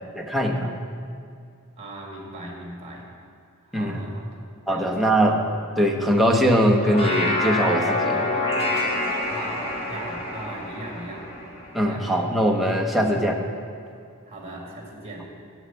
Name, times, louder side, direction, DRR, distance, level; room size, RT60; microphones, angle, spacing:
voice 1, 0.1-0.7 3.7-4.1 4.7-5.4 5.8-8.3 11.7-13.3, equal, ahead, 0 dB, 0.9 m, -21 dB
voice 2, 1.8-3.1 3.6-4.4 4.7-5.1 9.3-11.3 11.8-12.0 14.3-15.3, right 1 dB, 25° right, -1 dB, 2.0 m, -38 dB
sound 1, 6.7-12.2, left 2 dB, 25° left, 1.9 m, -27 dB
8.1 x 8.0 x 8.1 m, 2.3 s
head